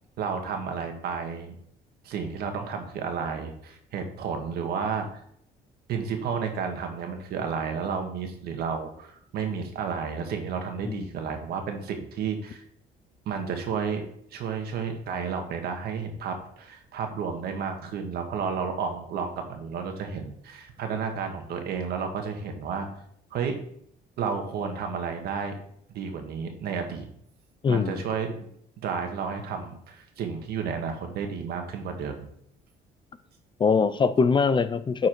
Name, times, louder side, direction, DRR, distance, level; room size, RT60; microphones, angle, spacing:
voice 1, 0.2-1.6 2.0-5.1 5.9-12.6 13.2-14.1 14.3-22.9 23.3-23.6 24.2-25.5 25.9-27.1 27.7-28.5 28.8-32.3, right 6 dB, 70° right, 5 dB, 1.6 m, -32 dB
voice 2, 27.6-28.0 33.6-35.1, left 5 dB, 30° left, 13 dB, 0.5 m, -22 dB
9.5 x 4.7 x 4.6 m, 0.68 s
cardioid pair, 110°, 17 cm